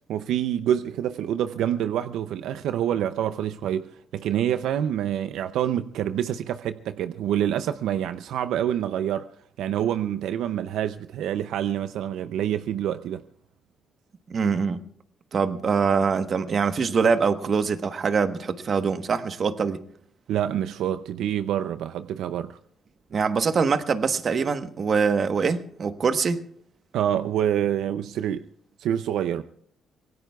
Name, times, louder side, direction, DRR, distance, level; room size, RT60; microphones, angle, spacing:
voice 1, 0.0-9.3 9.6-13.2 20.3-22.6 26.9-28.5 28.8-29.4, right 10 dB, 80° right, 0.5 m, -27 dB
voice 2, 14.3-14.8 15.3-19.8 23.1-26.4, right 5 dB, 50° right, 1.2 m, -24 dB
25.5 x 19.0 x 2.4 m
cardioid pair, 90°, 0 cm